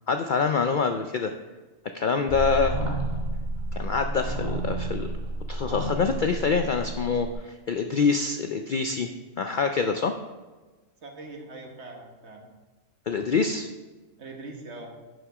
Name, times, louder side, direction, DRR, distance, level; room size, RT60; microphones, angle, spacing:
voice 1, 0.1-1.3 1.9-2.8 3.7-5.1 5.5-9.1 9.4-10.1 13.1-13.7, left 5 dB, 60° left, 6 dB, 0.5 m, -25 dB
sound 1, 2.3-7.3, right 1 dB, 35° right, 2.0 m, -31 dB
voice 2, 11.0-12.5 14.2-14.9, right 2 dB, 60° right, 2 dB, 1.6 m, -42 dB
11.0 x 6.5 x 4.8 m, 1.2 s
omnidirectional pair, 1.3 m